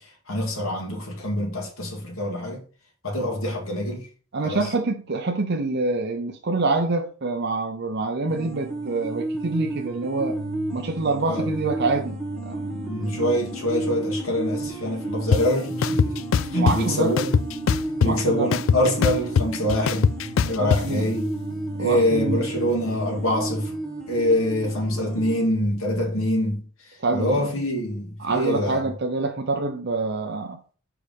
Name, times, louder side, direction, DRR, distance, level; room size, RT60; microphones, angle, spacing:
voice 1, 0.3-2.6 3.0-4.1 4.4-4.6 11.3-11.5 12.9-16.2 16.5-17.4 18.0-20.2 20.5-21.3 21.8-23.7 24.1-26.6 27.1-28.8, left 1 dB, 85° left, 2.2 m, -25 dB
voice 2, 4.3-10.4 10.7-12.2 12.4-12.9 16.5-17.2 18.0-18.5 20.6-21.1 21.7-22.5 27.0-27.5 28.2-30.6, right 3 dB, 55° right, 0.7 m, -26 dB
sound 1, 8.3-25.5, right 2 dB, 5° left, 1.5 m, -32 dB
sound 2, 15.3-15.4 15.8-16.8 17.2-18.2 18.5-20.8, left 6 dB, 70° left, 0.3 m, -21 dB
4.8 x 4.8 x 5.1 m
head